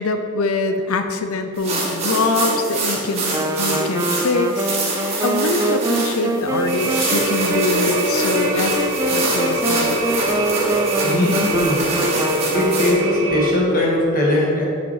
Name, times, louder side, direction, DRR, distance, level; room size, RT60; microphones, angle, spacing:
voice 1, 0.0-8.8 9.1-10.0, left 3 dB, 75° left, 7 dB, 0.6 m, -23 dB
sound 1, 1.6-12.9, right 2 dB, 30° right, 2.3 m, -25 dB
Wind instrument woodwind instrument, 3.3-13.2, right 1 dB, 15° right, 0.4 m, -25 dB
sound 2, 6.7-13.5, right 1 dB, 65° right, 1.3 m, -24 dB
voice 2, 11.0-12.0 12.5-14.6, left 1 dB, 40° left, -4 dB, 2.0 m, -20 dB
8.3 x 6.8 x 4.9 m, 2.5 s
head